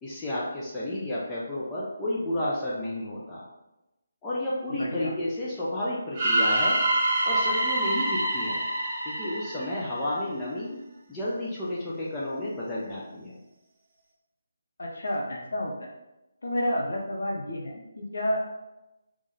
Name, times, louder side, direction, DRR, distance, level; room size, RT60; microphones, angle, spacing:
voice 1, 0.0-3.5 4.2-6.8 7.2-8.6 9.1-10.8 11.1-13.3, left 1 dB, 10° left, -8 dB, 0.6 m, -31 dB
voice 2, 4.8-5.1 14.8-15.9 16.4-18.4, left 1 dB, 65° left, 0 dB, 0.8 m, -30 dB
sound 1, 6.1-10.2, right 1 dB, 30° right, 1.0 m, -26 dB
3.6 x 3.1 x 4.0 m, 0.98 s
figure-of-eight pair, 150°, 0 cm